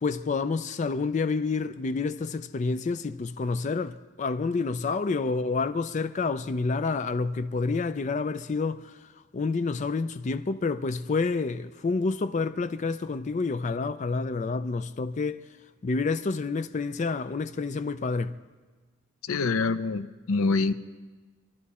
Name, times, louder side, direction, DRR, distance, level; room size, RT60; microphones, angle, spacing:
voice 1, 0.0-15.4 15.8-18.4, left 4 dB, 35° left, 0.4 m, -29 dB
voice 2, 19.2-20.7, left 4 dB, 85° left, 0.6 m, -25 dB
24.0 x 12.0 x 4.2 m
head